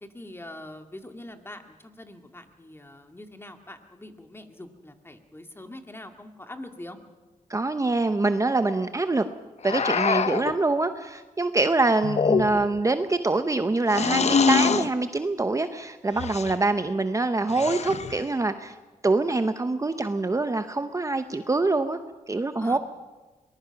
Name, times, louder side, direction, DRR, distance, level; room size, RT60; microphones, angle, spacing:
voice 1, 0.0-7.0 22.6-22.8, left 1 dB, 15° left, 6 dB, 2.1 m, -43 dB
voice 2, 7.5-9.2 9.6-18.7 19.0-22.0 22.3-22.8, right 3 dB, 25° right, 9 dB, 0.8 m, -25 dB
sound 1, 9.6-10.5 12.0-12.8 13.9-14.9 16.2-16.6 17.5-18.2, left 5 dB, 50° left, 0.9 m, -24 dB
23.5 x 20.0 x 5.9 m, 1.2 s
cardioid pair, 80°, 14 cm